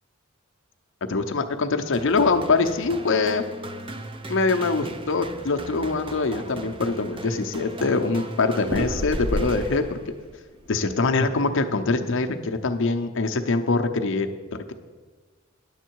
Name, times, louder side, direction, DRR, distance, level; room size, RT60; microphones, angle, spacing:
voice 1, 1.1-3.4 4.3-10.0 10.7-14.7, left 3 dB, 65° left, 7 dB, 0.7 m, -24 dB
sound 1, 1.9-10.2, right 2 dB, 25° right, 0.5 m, -38 dB
sound 2, 5.4-5.7 6.1-6.2 6.5-7.2 8.6-9.9 10.2-10.7, equal, 75° right, 2.7 m, -30 dB
10.0 x 7.4 x 4.6 m, 1.4 s
head